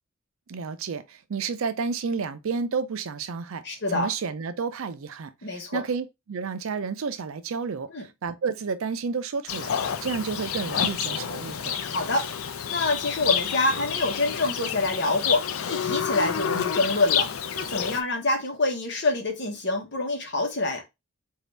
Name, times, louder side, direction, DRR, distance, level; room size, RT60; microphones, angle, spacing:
voice 1, 0.5-3.6 3.9-9.7 10.0-11.8, right 5 dB, 80° right, 0.5 m, -31 dB
voice 2, 3.6-4.1 5.4-5.8 7.9-8.0 11.8-12.3 12.7-15.4 15.7-17.3 17.5-20.8, left 2 dB, 55° left, 1.3 m, -26 dB
Livestock farm animals working animals, 9.5-18.0, left 8 dB, 85° left, 0.5 m, -29 dB
4.0 x 2.7 x 3.3 m
head